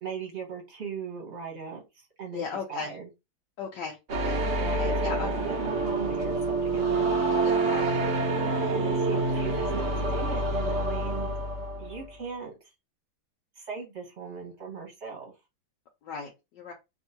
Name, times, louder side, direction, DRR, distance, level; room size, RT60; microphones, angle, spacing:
voice 1, 0.0-3.1 4.6-7.1 8.7-11.3 11.8-12.7 13.6-15.3, right 6 dB, 45° right, 1 dB, 1.0 m, -39 dB
voice 2, 2.3-2.9 3.6-4.4 4.8-5.3 7.4-8.0 8.4-8.8 9.0-9.2 16.0-16.7, left 6 dB, 70° left, 0 dB, 1.3 m, -37 dB
sound 1, 4.1-12.0, right 2 dB, 75° right, 0.6 m, -27 dB
3.5 x 2.7 x 2.7 m, 0.24 s
omnidirectional pair, 2.1 m